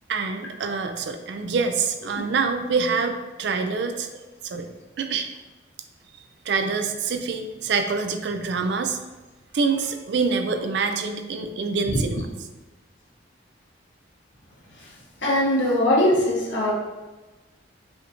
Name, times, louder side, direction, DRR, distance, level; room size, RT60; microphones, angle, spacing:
voice 1, 0.1-4.7 5.0-5.3 6.5-9.0 9.5-12.3, right 4 dB, 65° right, 7 dB, 0.4 m, -26 dB
voice 2, 15.2-16.7, left 1 dB, 80° left, -4 dB, 1.2 m, -21 dB
5.7 x 2.6 x 2.8 m, 1.2 s
head